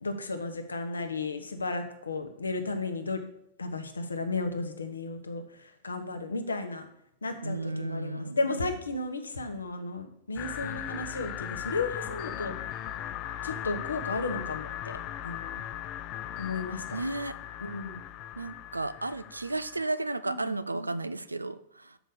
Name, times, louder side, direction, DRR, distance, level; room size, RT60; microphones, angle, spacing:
voice 1, 0.0-3.2 3.6-6.8 7.2-12.5 13.4-15.0 15.2-15.6 16.4-17.0 17.6-18.0 20.3-20.9, left 3 dB, 80° left, 7 dB, 1.0 m, -34 dB
voice 2, 7.4-8.5 10.6-10.9 16.9-17.4 18.4-22.0, right 2 dB, 85° right, 14 dB, 0.4 m, -34 dB
sound 1, 10.4-19.9, left 11 dB, 40° left, 0.5 m, -38 dB
6.6 x 5.0 x 6.6 m, 0.72 s
figure-of-eight pair, 95°, 0 cm